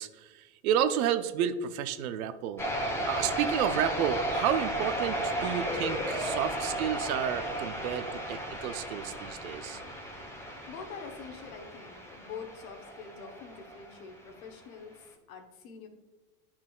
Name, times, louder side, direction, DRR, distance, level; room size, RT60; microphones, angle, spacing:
voice 1, 0.0-2.6 3.1-9.8, right 9 dB, 75° right, 12 dB, 0.7 m, -31 dB
sound 1, 2.6-14.0, right 1 dB, 5° left, 1.0 m, -34 dB
voice 2, 10.3-15.9, left 5 dB, 75° left, 4 dB, 1.4 m, -45 dB
9.8 x 5.7 x 2.4 m, 1.2 s
supercardioid pair, 120°, 43 cm